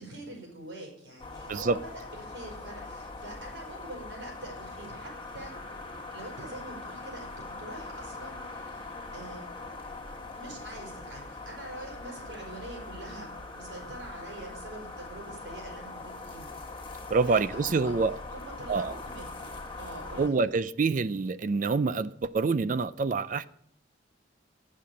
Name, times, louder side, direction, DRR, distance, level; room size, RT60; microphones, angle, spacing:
voice 1, 0.0-5.5 6.1-7.3 7.6-8.8 9.1-9.5 10.3-16.5 16.8-17.0 17.3-17.9 18.3-19.5 19.8-20.4, right 1 dB, 85° right, 5.0 m, -44 dB
sound 1, 1.2-20.3, left 3 dB, 25° left, 1.7 m, -42 dB
voice 2, 17.1-18.2 18.7-18.9 20.2-23.4, right 4 dB, 45° right, 0.4 m, -26 dB
8.7 x 7.6 x 8.2 m
head